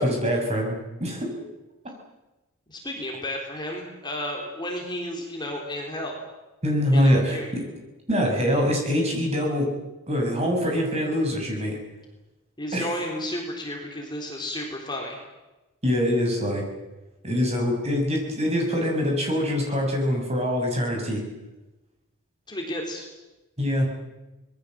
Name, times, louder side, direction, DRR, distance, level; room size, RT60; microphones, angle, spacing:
voice 1, 0.0-1.4 6.6-7.4 8.1-9.7 10.1-11.8 12.7-12.9 15.8-16.6 17.2-21.2 23.6-23.9, equal, 30° right, 1 dB, 6.6 m, -24 dB
voice 2, 2.7-6.2 6.9-7.5 12.6-15.2 22.5-23.1, left 1 dB, 20° left, 1 dB, 3.7 m, -32 dB
25.5 x 21.0 x 7.7 m, 1.1 s
head